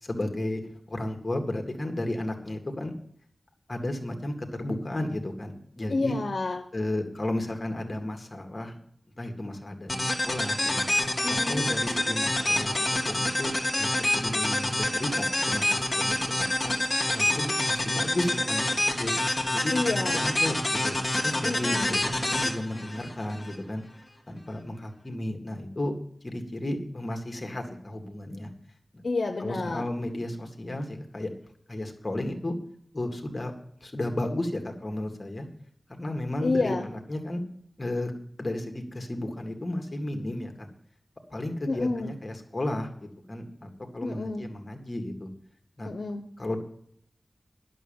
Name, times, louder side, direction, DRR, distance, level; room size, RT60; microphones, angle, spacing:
voice 1, 0.0-2.9 3.7-6.1 6.7-8.8 9.2-10.9 11.3-16.7 17.1-19.1 19.5-23.8 24.3-25.9 26.2-28.5 28.9-29.0 29.4-31.3 31.7-32.6 32.9-33.5 33.8-35.5 36.0-37.4 37.8-38.1 38.4-40.7 41.3-42.9 43.3-45.3 45.8-45.9 46.4-46.6, left 1 dB, 40° left, 4 dB, 2.0 m, -33 dB
voice 2, 5.9-6.6 11.2-11.6 19.7-20.2 21.4-21.9 29.0-29.8 36.4-36.9 41.7-42.1 44.0-44.4 45.8-46.2, left 3 dB, 70° left, 4 dB, 0.9 m, -29 dB
sound 1, 9.9-23.5, left 1 dB, 20° left, 2.2 m, -27 dB
11.0 x 6.4 x 8.7 m, 0.66 s
wide cardioid pair, 85°, 0 cm